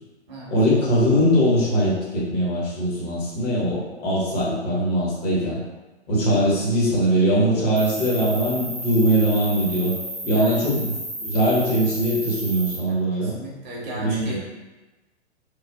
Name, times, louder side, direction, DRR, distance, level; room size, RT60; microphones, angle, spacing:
voice 1, 0.5-5.6 6.1-9.9 10.3-10.9 11.2-13.4 13.9-14.4, equal, 35° left, -6 dB, 0.8 m, -21 dB
Cricket, 7.8-12.8, right 1 dB, 15° right, 0.4 m, -33 dB
voice 2, 10.2-10.6 13.1-14.4, right 1 dB, 40° right, -5 dB, 0.8 m, -36 dB
3.1 x 2.0 x 2.3 m, 1.1 s
figure-of-eight pair, 115°, 34 cm